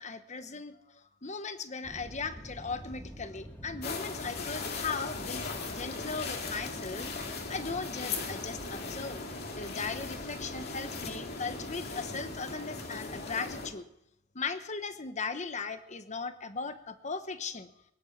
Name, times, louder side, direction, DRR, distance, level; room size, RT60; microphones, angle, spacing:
voice 1, 0.0-9.2 9.5-13.9 14.3-17.7, left 4 dB, 35° left, 10 dB, 1.1 m, -38 dB
sound 1, 1.8-13.8, equal, 10° left, 1.8 m, -47 dB
sound 2, 3.8-13.7, left 4 dB, 50° left, 2.4 m, -39 dB
23.0 x 10.5 x 5.9 m, 0.77 s
head